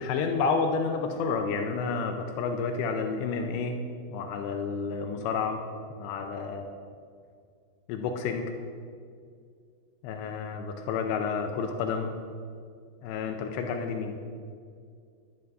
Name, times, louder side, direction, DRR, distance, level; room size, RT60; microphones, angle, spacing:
voice 1, 0.0-3.8 4.1-5.6 6.0-6.7 7.9-8.5 10.0-12.1 13.0-14.2, left 5 dB, 80° left, 5 dB, 2.9 m, -30 dB
11.0 x 11.0 x 5.3 m, 2.2 s
omnidirectional pair, 5.3 m